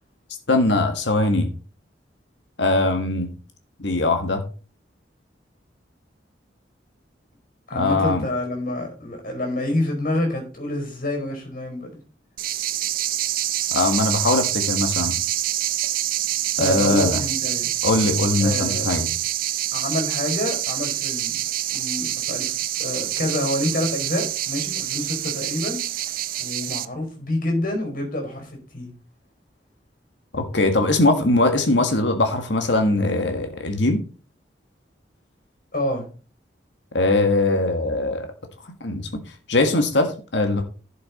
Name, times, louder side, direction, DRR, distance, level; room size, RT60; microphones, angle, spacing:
voice 1, 0.5-1.5 2.6-3.3 3.8-4.4 7.7-8.2 13.7-15.1 16.6-17.2 17.8-19.1 30.3-34.0 36.9-38.3 38.8-39.1 39.5-40.6, left 2 dB, 80° left, 5 dB, 1.6 m, -21 dB
voice 2, 7.7-11.9 16.6-17.7 18.4-18.9 19.7-21.4 21.7-25.8 26.4-28.9 35.7-36.1, left 1 dB, 50° left, 3 dB, 5.0 m, -27 dB
sound 1, 12.4-26.9, right 13 dB, 50° right, 0.6 m, -26 dB
11.5 x 6.7 x 4.2 m, 0.36 s
head